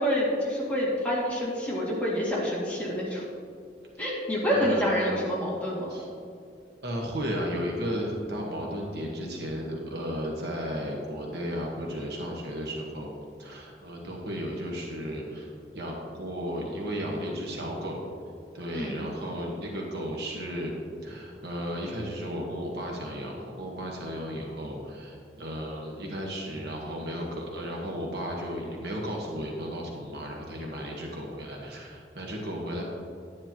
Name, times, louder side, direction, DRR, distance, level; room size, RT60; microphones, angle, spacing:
voice 1, 0.0-3.2 4.0-5.9 18.7-19.0, equal, 10° left, -6 dB, 2.2 m, -27 dB
voice 2, 4.4-4.8 5.9-6.1 6.8-13.1 13.4-15.5 15.7-18.0 18.5-20.7 21.0-32.8, equal, 70° right, -1 dB, 1.3 m, -34 dB
10.5 x 9.8 x 2.9 m, 2.4 s
head